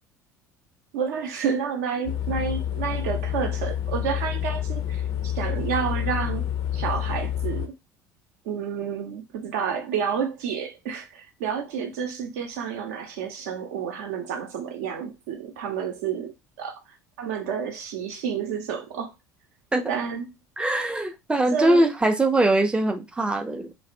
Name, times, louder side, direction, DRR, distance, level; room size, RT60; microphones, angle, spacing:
voice 1, 0.9-6.5 6.7-7.7 8.4-16.3 16.6-16.7 17.2-19.1 19.9-20.3 21.5-21.9, right 7 dB, 60° right, 0.6 m, -30 dB
sound 1, 2.0-7.7, left 10 dB, 50° left, 0.4 m, -28 dB
voice 2, 20.6-23.7, right 1 dB, 10° right, 0.4 m, -22 dB
2.6 x 2.1 x 2.5 m
figure-of-eight pair, 65°, 9 cm